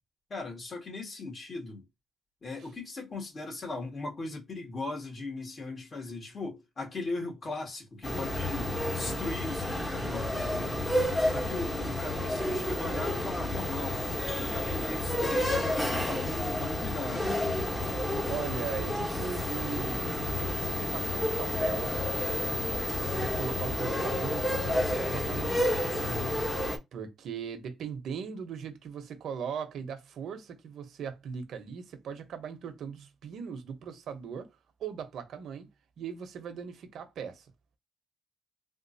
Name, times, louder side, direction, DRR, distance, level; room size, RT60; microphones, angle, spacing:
voice 1, 0.3-1.9 2.4-10.9 11.3-14.0 14.3-17.4 26.0-26.4, left 3 dB, 40° left, 1.7 m, -38 dB
sound 1, 8.0-26.8, left 1 dB, 10° left, 1.0 m, -30 dB
voice 2, 18.3-22.0 22.6-25.6 25.9-26.1 26.9-34.5 34.8-35.7 36.0-37.5, right 7 dB, 70° right, 0.9 m, -39 dB
3.5 x 2.5 x 2.7 m
cardioid pair, 90°, 0 cm